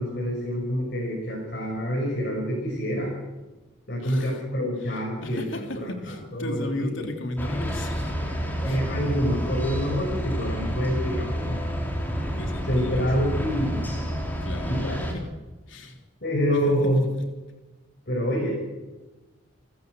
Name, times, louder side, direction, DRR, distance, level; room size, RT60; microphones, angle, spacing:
voice 1, 0.0-3.1 3.9-7.1 8.6-11.6 12.7-13.8 14.7-15.0 16.2-17.1 18.1-18.7, equal, 50° left, -2 dB, 6.2 m, -27 dB
voice 2, 4.0-4.4 4.8-8.3 8.6-8.8 12.3-13.1 14.4-15.2 15.7-16.0 16.7-16.9, left 2 dB, 70° left, 4 dB, 3.2 m, -35 dB
sound 1, 7.4-15.1, equal, 10° left, 3.8 m, -29 dB
29.5 x 14.5 x 8.2 m, 1.2 s
head